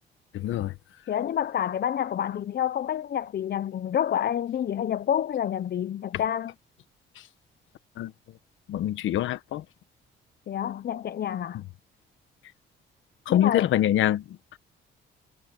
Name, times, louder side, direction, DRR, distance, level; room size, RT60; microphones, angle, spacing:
voice 1, 0.3-0.7 7.2-7.3 8.0-8.1 8.7-9.6 11.5-11.6 13.3-14.6, left 12 dB, 80° left, 1.2 m, -25 dB
voice 2, 1.1-6.5 10.5-11.7 13.3-13.7, left 10 dB, 55° left, 0.8 m, -28 dB
cardioid pair, 90°, 20 cm